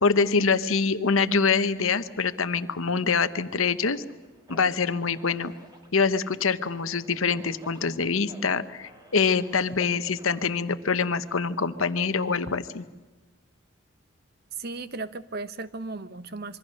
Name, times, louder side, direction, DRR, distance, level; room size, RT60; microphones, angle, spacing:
voice 1, 0.0-4.0 4.5-5.5 5.9-12.8, left 5 dB, 80° left, 12 dB, 1.0 m, -25 dB
sound 1, 3.9-10.4, right 1 dB, 20° right, 2.7 m, -52 dB
voice 2, 14.6-16.6, right 3 dB, 50° right, 13 dB, 0.9 m, -36 dB
26.5 x 23.5 x 6.5 m, 1.3 s
head